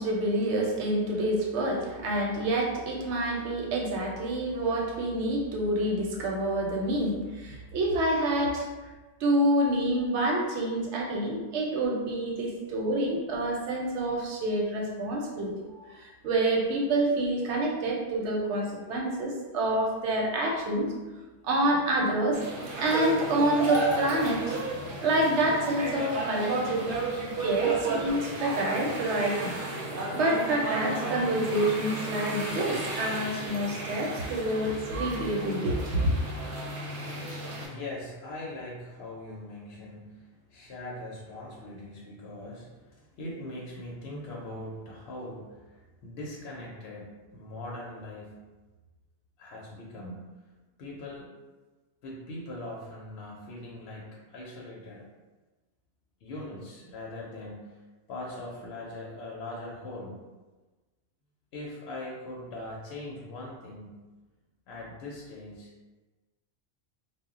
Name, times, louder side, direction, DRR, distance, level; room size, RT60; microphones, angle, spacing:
voice 1, 0.0-8.7 9.2-15.5 15.9-20.9 21.4-22.4 22.8-24.6 25.0-26.8 27.4-29.6 30.1-36.1, right 1 dB, 85° right, -1 dB, 0.9 m, -27 dB
sound 1, 22.3-37.7, right 2 dB, 60° right, 0.7 m, -33 dB
voice 2, 37.1-48.4 49.4-50.2 50.8-51.3 52.0-55.1 56.2-57.8 58.1-60.2 61.5-64.0 64.7-65.7, left 1 dB, 70° left, -4 dB, 0.8 m, -41 dB
2.1 x 2.0 x 3.5 m, 1.2 s
omnidirectional pair, 1.1 m